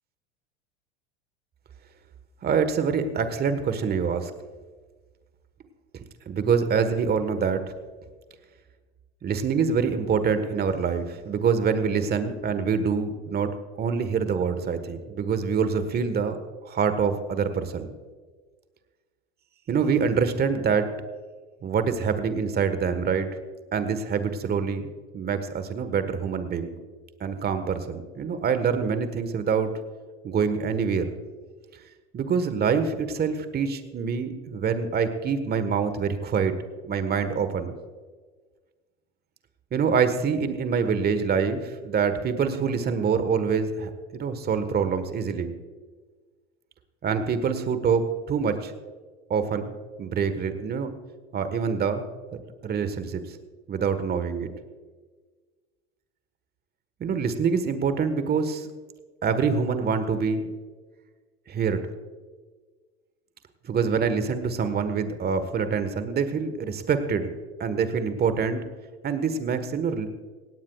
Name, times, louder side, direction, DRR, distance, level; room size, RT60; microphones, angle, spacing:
voice 1, 2.4-4.3 6.3-7.6 9.2-16.4 16.6-17.9 19.7-20.9 21.6-23.3 23.7-24.9 25.1-26.7 27.2-29.7 30.2-31.1 32.1-36.5 36.9-37.7 39.7-45.5 47.0-48.7 49.3-49.7 50.0-50.9 51.3-52.0 52.3-53.2 53.7-54.5 57.0-58.7 59.2-60.5 61.5-61.8 63.6-67.3 67.6-68.6 69.0-70.1, right 6 dB, 30° right, 10 dB, 1.4 m, -25 dB
17.5 x 17.5 x 2.4 m, 1.4 s
hypercardioid pair, 90°, 34 cm